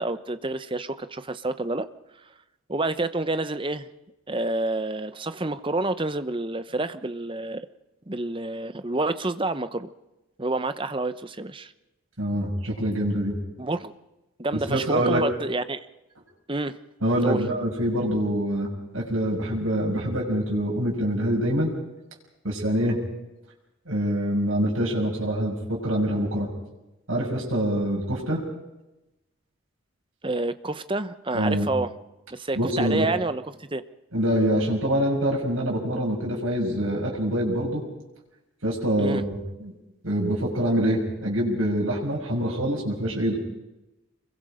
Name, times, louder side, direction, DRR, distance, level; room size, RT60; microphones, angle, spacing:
voice 1, 0.0-1.9 2.7-3.9 4.3-7.7 8.1-9.9 10.4-11.7 13.6-13.9 14.4-15.8 16.5-16.8 17.2-17.4 30.2-31.9 32.3-33.8 39.0-39.2, right 2 dB, 25° right, 12 dB, 0.9 m, -28 dB
voice 2, 12.2-13.4 14.5-15.3 17.0-21.7 22.4-23.0 23.9-26.5 27.1-28.4 31.3-31.7 32.5-33.0 34.1-37.8 38.6-39.7 40.0-43.4, equal, 75° right, -3 dB, 6.2 m, -25 dB
26.0 x 22.5 x 5.1 m, 0.97 s
head